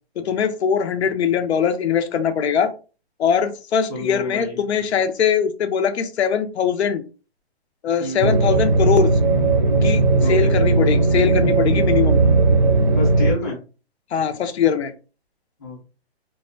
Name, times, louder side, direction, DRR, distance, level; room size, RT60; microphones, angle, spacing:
voice 1, 0.2-2.7 3.2-7.0 7.8-9.1 9.8-12.2 14.1-14.9, left 7 dB, 85° left, 8 dB, 0.6 m, -21 dB
voice 2, 3.9-4.6 8.0-8.3 10.2-10.5 12.9-13.6 15.6-15.8, left 1 dB, 20° left, -5 dB, 0.6 m, -29 dB
sound 1, 8.2-13.3, right 3 dB, 50° right, 0.5 m, -17 dB
2.6 x 2.1 x 2.5 m, 0.34 s
hypercardioid pair, 180°, 32 cm